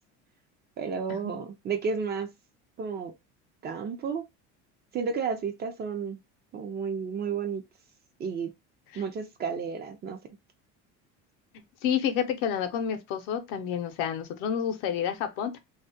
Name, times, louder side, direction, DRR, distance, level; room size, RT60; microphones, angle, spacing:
voice 1, 0.8-2.3 2.8-3.1 3.6-4.3 4.9-6.2 6.5-7.6 8.2-8.5 8.9-10.2, right 5 dB, 30° right, 0.4 m, -32 dB
voice 2, 11.8-15.6, left 8 dB, 75° left, 0.7 m, -29 dB
2.3 x 2.1 x 2.5 m
cardioid pair, 120°, 33 cm